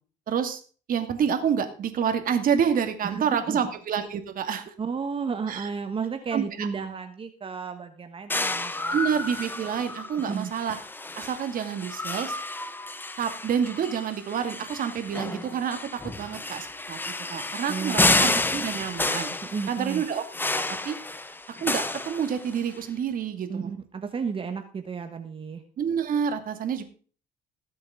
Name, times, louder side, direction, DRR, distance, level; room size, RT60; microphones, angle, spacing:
voice 1, 0.3-0.6 0.9-4.7 5.5-5.7 6.3-6.7 8.9-10.8 11.1-12.4 13.2-15.8 16.0-17.0 17.3-19.3 19.7-21.0 21.6-23.7 25.8-26.8, right 7 dB, 55° right, 7 dB, 2.4 m, -28 dB
voice 2, 3.0-3.6 4.8-9.4 10.3-10.5 17.7-18.4 19.4-20.0 23.5-25.6, right 5 dB, 30° right, 7 dB, 1.3 m, -33 dB
sound 1, 8.3-22.8, left 2 dB, 10° left, 1.0 m, -30 dB
19.0 x 7.7 x 3.8 m, 0.40 s
cardioid pair, 110°, 17 cm